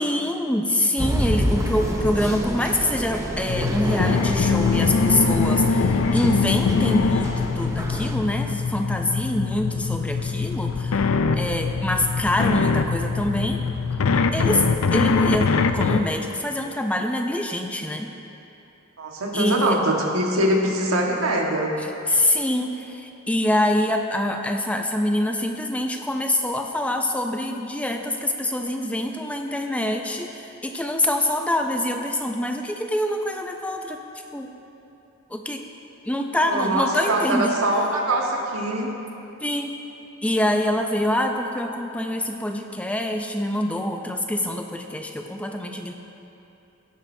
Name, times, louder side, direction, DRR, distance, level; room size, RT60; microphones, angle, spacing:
voice 1, 0.0-13.6 14.3-14.7 14.9-18.1 19.3-19.8 21.8-34.0 34.3-34.5 35.3-35.6 36.1-37.6 39.4-39.8 40.2-45.9, left 1 dB, 5° left, 4 dB, 0.4 m, -25 dB
sound 1, 1.0-8.1, equal, 15° right, 0.8 m, -28 dB
sound 2, 3.5-16.0, left 4 dB, 85° left, 0.5 m, -23 dB
voice 2, 19.0-21.7 36.3-38.9, right 1 dB, 90° right, 0 dB, 1.4 m, -23 dB
16.5 x 10.5 x 2.7 m, 2.9 s
head